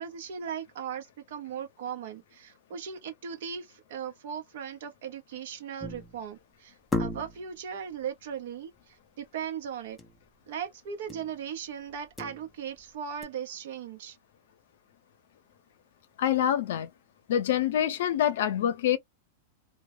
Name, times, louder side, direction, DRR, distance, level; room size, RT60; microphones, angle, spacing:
voice 1, 0.0-10.0 10.5-14.2, right 8 dB, 60° right, 0.7 m, -38 dB
sound 1, 5.8-6.3 6.9-7.6 10.0-10.2 10.5-10.6 11.1-11.4 11.9-12.8 13.2-13.3, left 2 dB, 5° left, 0.5 m, -35 dB
voice 2, 16.2-16.9 17.3-19.0, left 10 dB, 65° left, 0.6 m, -26 dB
2.2 x 2.0 x 3.0 m
supercardioid pair, 170°, 0 cm